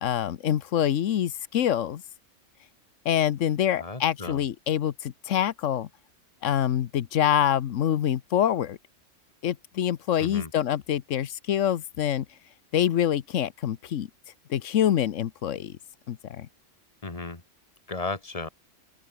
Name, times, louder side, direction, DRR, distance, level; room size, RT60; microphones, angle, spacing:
voice 1, 0.0-2.0 3.0-5.9 6.4-8.8 9.4-12.2 12.7-14.1 14.5-15.7 16.1-16.5, left 10 dB, 90° left, 1.2 m, -25 dB
voice 2, 3.8-4.4 10.2-10.5 17.0-17.4 17.9-18.5, left 3 dB, 30° left, 2.1 m, -34 dB
open air
omnidirectional pair, 1.3 m